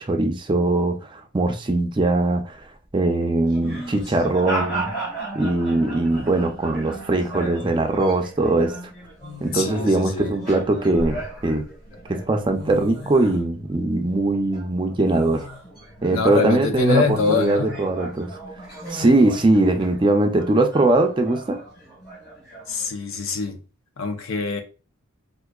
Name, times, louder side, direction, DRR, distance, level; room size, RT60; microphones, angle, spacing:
voice 1, 0.0-2.6 2.9-4.9 5.3-8.7 9.4-11.6 12.1-15.4 16.0-18.3 18.9-21.6, right 2 dB, 25° right, 0.4 m, -21 dB
sound 1, 3.4-13.9 14.2-22.9, right 2 dB, 40° left, 2.0 m, -37 dB
sound 2, 3.6-4.1 5.6-5.7 6.1-6.6 7.9-8.1 9.2-10.0 10.6-11.6 12.3-12.4 12.6-13.4 15.1-15.7 16.2-16.3 17.0-17.5 18.8-19.4, left 1 dB, 25° left, 1.4 m, -37 dB
voice 2, 9.5-10.3 16.1-17.8 22.7-23.6 24.0-24.6, left 5 dB, 75° left, 0.6 m, -24 dB
4.6 x 2.5 x 2.3 m
head